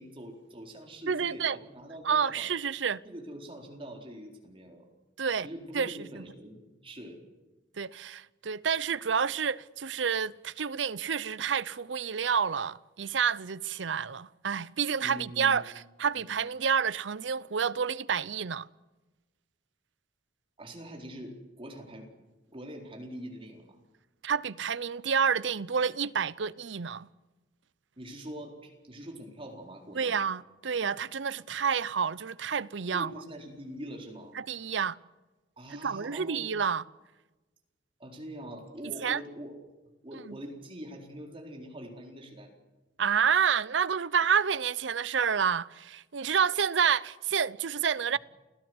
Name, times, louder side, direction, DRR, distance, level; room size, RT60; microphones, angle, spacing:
voice 1, 0.0-2.5 3.0-4.9 5.4-7.2 15.0-15.6 16.1-16.4 20.6-22.1 22.5-23.8 28.0-30.2 32.9-34.4 35.6-36.5 38.0-39.6 40.0-42.5, equal, 30° right, 4.3 m, -44 dB
voice 2, 1.1-1.6 2.0-3.0 5.2-5.5 5.7-6.2 7.8-15.7 16.0-18.7 24.2-27.1 29.9-33.1 34.5-35.0 35.7-36.8 39.0-39.2 40.3-40.4 43.0-48.2, right 6 dB, 75° right, 0.7 m, -29 dB
29.0 x 16.5 x 8.0 m
head